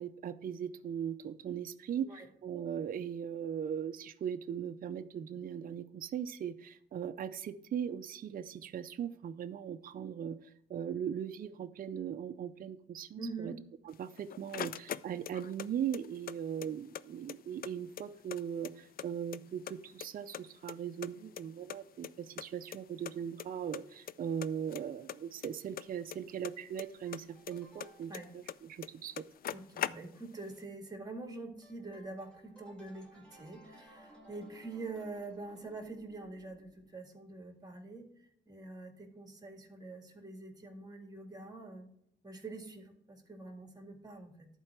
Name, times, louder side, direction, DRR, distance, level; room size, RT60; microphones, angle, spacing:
voice 1, 0.0-10.4 10.7-13.5 13.9-29.2, right 8 dB, 45° right, 9 dB, 0.6 m, -39 dB
voice 2, 13.2-13.6 28.1-28.3 29.5-38.1 38.5-41.9 42.2-44.5, right 3 dB, 20° right, 4 dB, 1.9 m, -45 dB
sound 1, 13.9-15.7 15.9-17.0 17.3-17.4 17.6-19.1 19.3-20.1 20.3-21.8 22.0-22.1 22.4-22.5 22.7-22.8 23.0-23.5 23.7-24.1 24.4-26.8 27.1-28.6 28.8-28.9 29.1-30.4, left 10 dB, 50° left, 0.4 m, -41 dB
sound 2, 26.8-28.6 31.6-36.9, right 1 dB, 5° left, 2.1 m, -59 dB
11.0 x 4.6 x 5.9 m, 0.72 s
cardioid pair, 90°, 20 cm